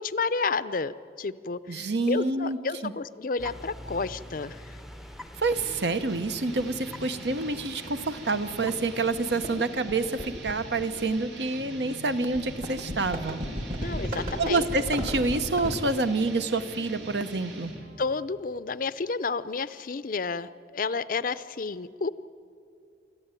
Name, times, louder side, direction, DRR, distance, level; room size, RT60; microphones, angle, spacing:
voice 1, 0.0-4.8 13.8-14.7 18.0-22.1, left 4 dB, 50° left, 15 dB, 0.5 m, -31 dB
voice 2, 1.7-2.6 2.8-2.9 5.3-13.4 14.4-17.7, right 3 dB, 70° right, 10 dB, 1.0 m, -27 dB
sound 1, 3.4-9.6, left 1 dB, ahead, 0.6 m, -45 dB
sound 2, 5.5-18.0, right 1 dB, 90° right, 3.0 m, -43 dB
sound 3, 5.8-5.9 7.4-7.5 7.8-8.1 8.7-8.9 9.1-11.3 12.3-15.8, equal, 50° right, 2.2 m, -35 dB
25.0 x 14.0 x 9.0 m, 2.5 s
head